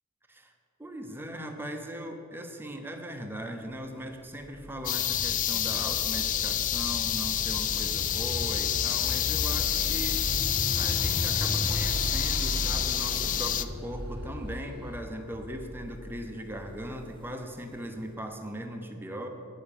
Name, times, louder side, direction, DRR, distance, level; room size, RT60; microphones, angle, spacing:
voice 1, 0.8-19.3, equal, 10° right, 4 dB, 1.0 m, -39 dB
sound 1, 4.4-17.6, equal, 25° left, 0.8 m, -37 dB
sound 2, 4.8-13.6, left 10 dB, 40° left, 0.4 m, -28 dB
sound 3, 9.9-15.0, right 1 dB, 55° right, 0.9 m, -50 dB
9.5 x 6.9 x 8.8 m, 2.5 s
head